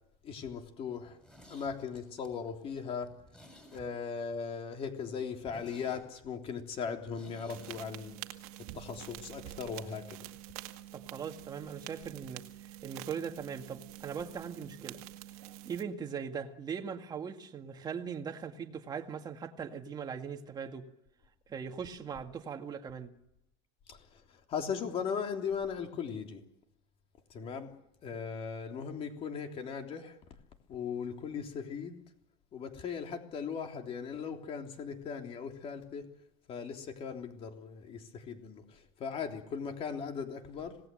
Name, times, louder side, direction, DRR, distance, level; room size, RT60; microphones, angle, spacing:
voice 1, 0.2-1.2 1.5-3.1 3.7-8.2 8.7-10.3 23.9-24.0 24.5-26.4 27.3-27.7 28.0-30.1 30.7-32.0 32.5-36.0 36.5-38.6 39.0-40.8, left 6 dB, 30° left, 4 dB, 3.4 m, -38 dB
Zipper (clothing), 1.0-4.3 4.6-4.7 5.0-5.1 5.4-7.8 8.1-8.2, left 1 dB, 5° left, 6.5 m, -55 dB
sound 1, 7.5-15.8, right 15 dB, 80° right, 2.1 m, -47 dB
voice 2, 10.9-15.0 15.6-20.9 21.5-23.1, right 7 dB, 20° right, 5 dB, 2.0 m, -40 dB
26.5 x 19.0 x 7.8 m, 0.81 s
cardioid pair, 155°, 18 cm